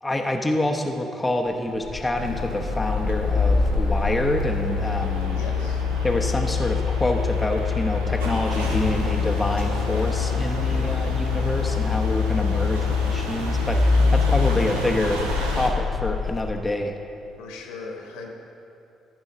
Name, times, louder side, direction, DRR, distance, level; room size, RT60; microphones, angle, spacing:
voice 1, 0.0-5.4 6.0-15.2 15.5-16.9, left 1 dB, 15° left, 2 dB, 0.8 m, -27 dB
sound 1, 1.8-16.5, left 5 dB, 45° left, 1.1 m, -25 dB
sound 2, 2.1-15.7, right 1 dB, 75° right, 0.9 m, -32 dB
voice 2, 5.3-5.9 17.4-18.3, left 4 dB, 65° left, 2 dB, 1.2 m, -38 dB
14.0 x 4.8 x 6.1 m, 2.7 s
figure-of-eight pair, 45°, 0 cm